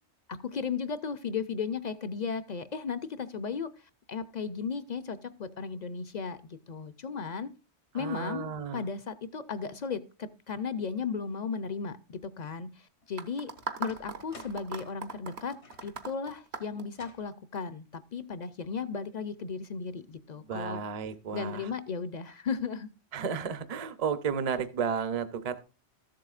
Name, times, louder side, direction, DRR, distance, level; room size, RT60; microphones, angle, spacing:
voice 1, 0.3-7.5 7.9-13.5 13.8-20.8 21.3-22.9, left 5 dB, 50° left, 14 dB, 0.6 m, -35 dB
voice 2, 7.9-8.9 20.5-21.7 23.1-25.6, right 6 dB, 40° right, 12 dB, 0.7 m, -33 dB
sound 1, 12.4-12.6 13.0-16.1 16.9-17.3, left 4 dB, 80° left, 1.5 m, -54 dB
sound 2, 13.2-17.6, right 5 dB, 75° right, 1.3 m, -39 dB
13.5 x 7.6 x 2.4 m, 0.33 s
omnidirectional pair, 1.1 m